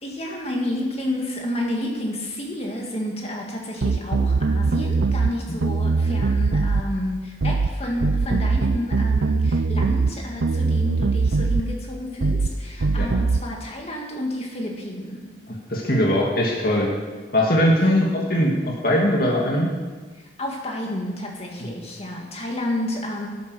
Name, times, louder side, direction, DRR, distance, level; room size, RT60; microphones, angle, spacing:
voice 1, 0.0-15.3 17.8-18.2 20.4-23.3, left 1 dB, 30° left, 0 dB, 2.3 m, -30 dB
sound 1, 3.8-5.3 5.6-6.9 7.4-7.7 8.0-10.1 10.4-11.7 12.2-12.5 12.8-13.4, right 4 dB, 80° right, 0.6 m, -21 dB
voice 2, 15.5-16.9 17.3-19.7 21.6-21.7, equal, 50° left, -2 dB, 2.2 m, -20 dB
12.0 x 10.5 x 6.4 m, 1.4 s
head